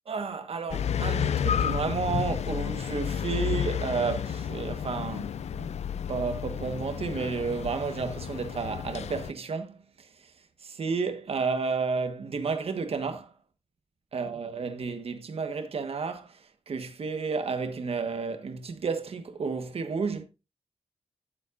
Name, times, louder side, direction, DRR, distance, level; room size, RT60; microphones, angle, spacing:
voice 1, 0.1-10.1 10.6-13.3 14.1-20.2, right 5 dB, 60° right, 1.3 m, -32 dB
sound 1, 0.7-9.3, left 8 dB, 70° left, 0.4 m, -31 dB
13.5 x 7.5 x 2.5 m
wide cardioid pair, 155°, 12 cm